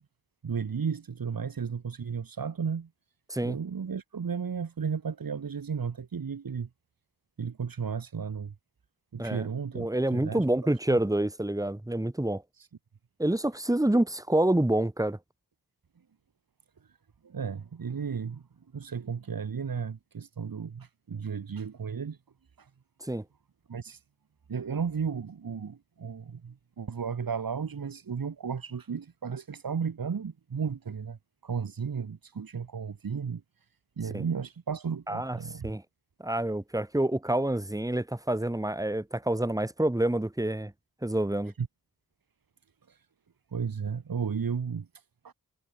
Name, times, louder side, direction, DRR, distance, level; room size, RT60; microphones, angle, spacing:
voice 1, 0.4-2.9 3.4-6.7 7.4-8.5 9.1-11.0 12.6-12.7 16.8-17.0 17.2-18.5 18.7-22.2 22.6-22.7 23.7-24.0 24.5-33.4 34.0-35.7 41.6-41.7 42.9-43.1 43.5-45.3, right 6 dB, 90° right, 5.3 m, -34 dB
voice 2, 9.7-12.4 13.2-15.2 23.0-23.2 34.1-34.2 35.1-35.4 35.6-35.8 36.2-40.7 41.0-41.5, right 1 dB, 10° right, 2.5 m, -27 dB
wide cardioid pair, 125°, 34 cm